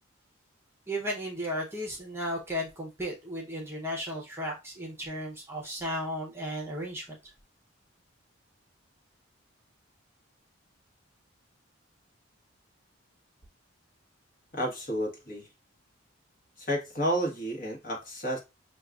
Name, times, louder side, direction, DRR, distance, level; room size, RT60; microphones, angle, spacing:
voice 1, 0.9-7.2, equal, 10° right, 0.7 m, -35 dB
voice 2, 14.5-15.5 16.6-18.4, equal, 45° left, 1.2 m, -31 dB
6.3 x 2.3 x 2.3 m
head